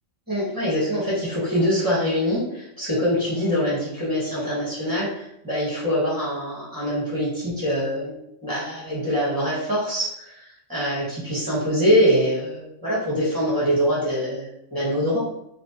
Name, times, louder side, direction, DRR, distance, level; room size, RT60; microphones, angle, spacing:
voice 1, 0.3-8.2 8.4-10.4 10.7-14.5 14.7-15.2, equal, 20° right, -9 dB, 0.9 m, -24 dB
2.5 x 2.1 x 2.7 m, 0.79 s
omnidirectional pair, 1.4 m